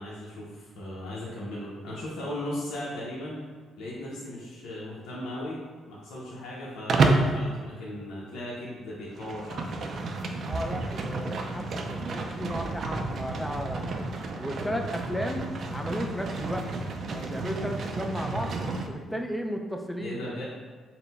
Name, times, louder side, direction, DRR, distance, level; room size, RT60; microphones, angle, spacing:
voice 1, 0.0-3.4 3.8-9.9 20.0-20.4, left 1 dB, 80° left, -6 dB, 0.8 m, -37 dB
Livestock farm animals working animals, 6.9-7.3 9.1-18.9, right 3 dB, 55° right, 0.4 m, -30 dB
voice 2, 10.5-14.0 14.4-15.5 15.7-16.7 17.1-18.5 18.9-20.4, equal, 5° left, 4 dB, 0.4 m, -34 dB
4.1 x 2.2 x 4.0 m, 1.5 s
cardioid pair, 90°, 0 cm